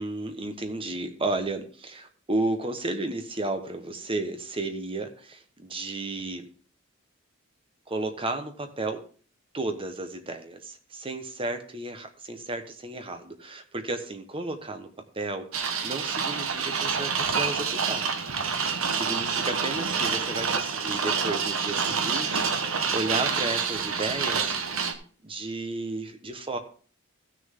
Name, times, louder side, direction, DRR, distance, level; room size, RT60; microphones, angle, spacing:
voice 1, 0.0-6.5 7.9-9.0 9.5-14.9 15.1-18.1 18.7-24.5 25.2-26.6, right 2 dB, 25° right, 7 dB, 1.2 m, -33 dB
sound 1, 15.5-24.9, right 5 dB, 70° right, 1.2 m, -27 dB
14.5 x 6.6 x 3.7 m, 0.43 s
head